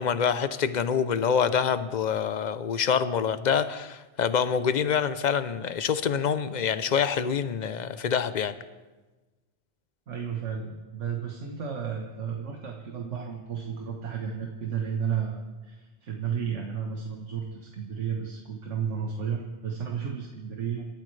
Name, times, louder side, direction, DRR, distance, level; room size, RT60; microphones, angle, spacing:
voice 1, 0.0-8.5, left 7 dB, 45° left, 13 dB, 0.7 m, -26 dB
voice 2, 10.1-20.9, right 7 dB, 80° right, 1 dB, 1.7 m, -33 dB
27.5 x 13.0 x 3.3 m, 1.2 s
omnidirectional pair, 1.2 m